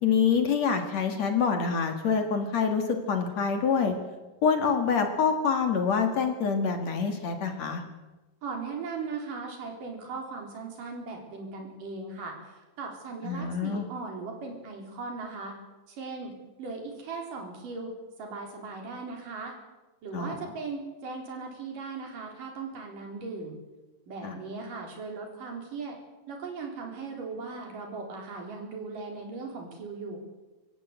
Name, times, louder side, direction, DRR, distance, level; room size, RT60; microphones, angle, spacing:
voice 1, 0.0-3.9 4.4-7.8 13.2-13.9 20.1-20.4 24.2-24.4, left 6 dB, 55° left, 5 dB, 2.8 m, -26 dB
voice 2, 8.4-15.6 15.9-16.3 16.6-17.9 18.2-19.6 20.0-23.6 24.1-26.0 26.3-30.2, right 4 dB, 65° right, 1 dB, 5.3 m, -38 dB
25.5 x 14.5 x 8.1 m, 1.1 s
omnidirectional pair, 4.1 m